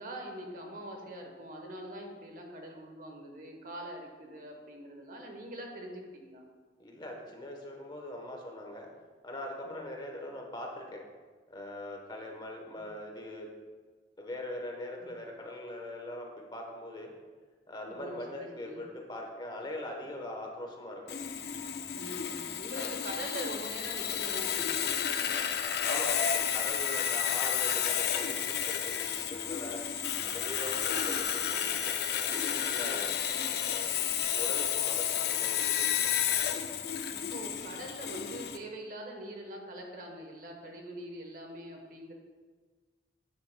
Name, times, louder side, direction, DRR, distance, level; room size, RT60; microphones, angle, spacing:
voice 1, 0.0-6.4 9.6-9.9 12.8-12.9 15.0-15.1 17.9-18.8 21.9-25.1 37.1-42.1, right 1 dB, 50° right, 2 dB, 1.0 m, -43 dB
voice 2, 6.8-8.9 9.2-11.0 11.5-13.5 14.2-17.1 17.7-21.0 22.7-22.9 25.8-29.8 30.2-33.1 33.6-36.2, left 1 dB, 25° left, 1 dB, 1.0 m, -41 dB
Sawing, 21.1-38.6, left 9 dB, 60° left, 0.5 m, -31 dB
8.8 x 7.6 x 2.2 m, 1.4 s
head